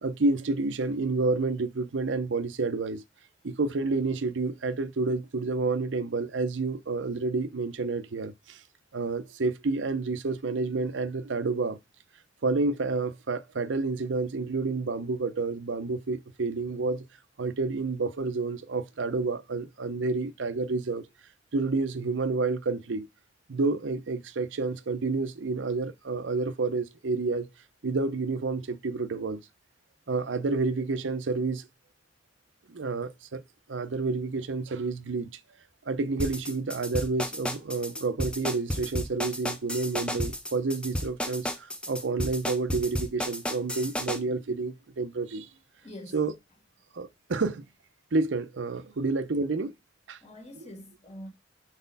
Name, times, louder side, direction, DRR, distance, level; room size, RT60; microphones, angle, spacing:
voice 1, 0.0-3.0 3.4-8.6 8.9-11.8 12.4-17.0 17.4-21.1 21.5-23.1 23.5-27.5 27.8-29.4 30.1-31.7 32.7-33.4 33.7-35.3 35.9-45.5 46.1-46.3 46.9-47.6 48.1-49.7 50.1-50.2, right 3 dB, 80° right, 0.6 m, -29 dB
sound 1, 36.2-44.2, equal, 5° left, 0.7 m, -32 dB
voice 2, 45.8-46.2 50.2-51.3, left 1 dB, 35° left, 1.7 m, -44 dB
4.4 x 4.1 x 5.4 m
head